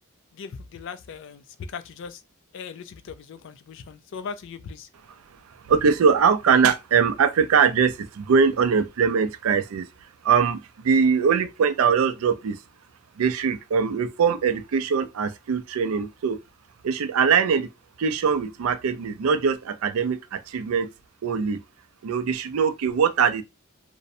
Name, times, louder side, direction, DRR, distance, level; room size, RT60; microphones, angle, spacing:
voice 1, 0.3-2.2 2.5-4.9, left 6 dB, 60° left, 0.3 m, -39 dB
voice 2, 5.5-9.9 10.2-12.6 13.2-16.4 16.8-17.7 18.0-20.9 21.2-21.6 22.0-23.4, right 6 dB, 90° right, 0.4 m, -22 dB
2.5 x 2.1 x 2.6 m
head